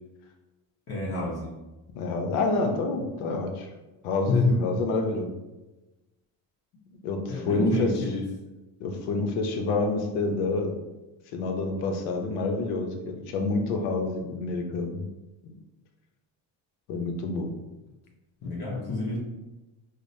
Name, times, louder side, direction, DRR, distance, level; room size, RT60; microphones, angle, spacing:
voice 1, 0.9-1.5 4.3-4.6 7.3-8.2 18.4-19.2, left 3 dB, 50° left, -6 dB, 1.0 m, -28 dB
voice 2, 1.9-3.7 4.0-5.3 7.0-8.0 8.8-10.7 11.3-15.0 15.4-15.5 16.9-17.6, left 3 dB, 85° left, 4 dB, 0.7 m, -28 dB
4.9 x 2.1 x 2.6 m, 1.1 s
supercardioid pair, 85°, 47 cm